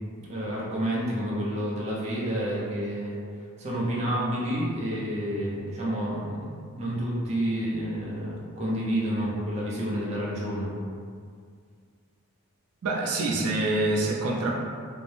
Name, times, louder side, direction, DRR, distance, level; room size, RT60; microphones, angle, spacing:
voice 1, 0.3-3.2 3.6-10.7, equal, 30° right, -6 dB, 0.4 m, -29 dB
voice 2, 12.8-14.6, right 2 dB, 90° right, -2 dB, 0.5 m, -26 dB
2.6 x 2.0 x 3.1 m, 2.1 s
head